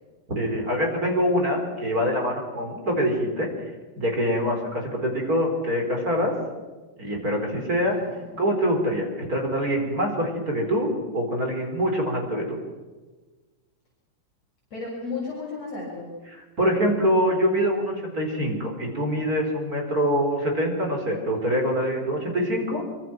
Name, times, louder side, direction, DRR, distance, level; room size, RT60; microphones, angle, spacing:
voice 1, 0.3-3.5 4.0-6.3 7.0-8.0 8.4-12.6 16.6-22.8, equal, 25° right, 2 dB, 4.8 m, -24 dB
voice 2, 7.9-8.4 14.7-16.1, left 3 dB, 55° left, -4 dB, 7.9 m, -34 dB
25.5 x 25.0 x 6.2 m, 1.3 s
omnidirectional pair, 3.6 m